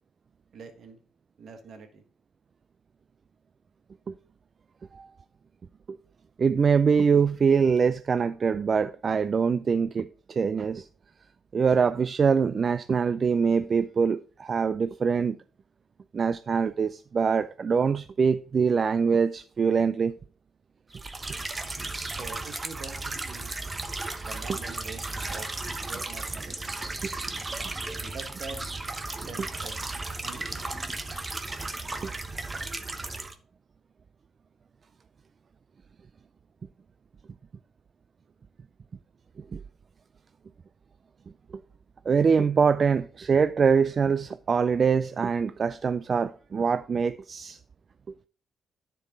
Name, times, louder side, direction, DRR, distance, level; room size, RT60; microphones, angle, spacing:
voice 1, 0.5-1.0 1.4-2.0 22.0-23.5 24.2-25.0 25.3-25.5 25.8-26.7 28.0-28.6 29.2-29.9 30.2-30.6, right 4 dB, 60° right, 1.6 m, -44 dB
voice 2, 6.4-10.9 11.5-15.4 16.1-20.1 24.5-24.6 27.0-27.1 32.0-32.1 39.4-39.6 41.5-41.6 42.1-47.6, right 6 dB, 45° right, 0.3 m, -24 dB
sound 1, 20.9-33.3, right 2 dB, 20° right, 0.8 m, -35 dB
10.5 x 4.6 x 3.8 m
cardioid pair, 90°, 0 cm